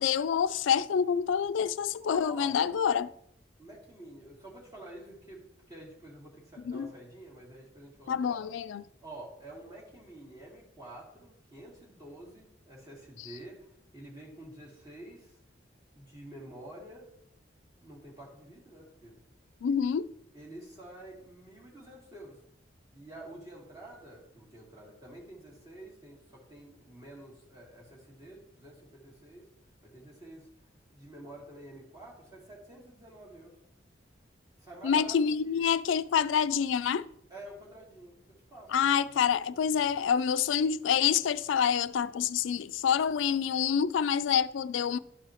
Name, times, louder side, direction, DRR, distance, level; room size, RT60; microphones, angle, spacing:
voice 1, 0.0-3.1 6.7-6.9 8.1-8.8 19.6-20.1 34.8-37.1 38.7-45.0, left 7 dB, 85° left, 0.3 m, -27 dB
voice 2, 2.0-2.5 3.6-8.5 9.0-15.4 15.9-17.1 17.8-19.2 20.3-22.4 22.9-29.5 29.8-30.5 30.9-33.6 34.6-35.6 37.3-38.9 39.2-39.9, right 1 dB, 20° right, 2.4 m, -49 dB
12.0 x 4.8 x 2.9 m
head